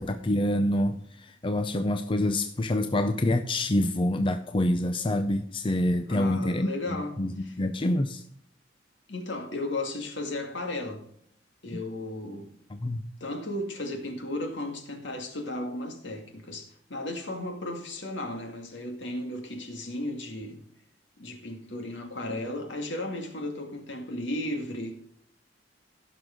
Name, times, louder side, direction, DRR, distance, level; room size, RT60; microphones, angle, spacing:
voice 1, 0.0-8.2 12.7-13.0, left 1 dB, 25° left, 0.5 m, -27 dB
voice 2, 6.1-7.6 7.8-7.9 9.1-11.0 11.6-12.5 13.2-20.6 21.2-25.0, left 1 dB, 70° left, 2.2 m, -35 dB
16.0 x 6.3 x 3.8 m
head